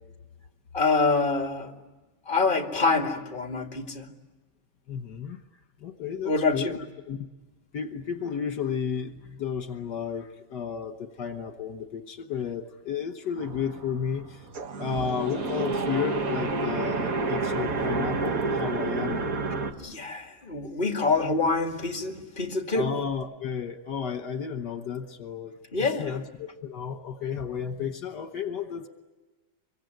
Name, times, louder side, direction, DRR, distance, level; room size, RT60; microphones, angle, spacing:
voice 1, 0.7-1.7 2.3-4.1 6.2-6.8 19.8-22.9 25.7-26.2, left 3 dB, 30° left, 4 dB, 2.4 m, -26 dB
voice 2, 4.9-5.4 5.8-6.8 7.1-7.3 7.7-14.5 14.8-19.3 22.7-25.5 26.0-28.9, left 7 dB, 75° left, 8 dB, 1.8 m, -32 dB
sound 1, 13.4-19.7, right 3 dB, 55° right, 2.0 m, -29 dB
25.5 x 24.0 x 9.3 m, 1.2 s
omnidirectional pair, 1.9 m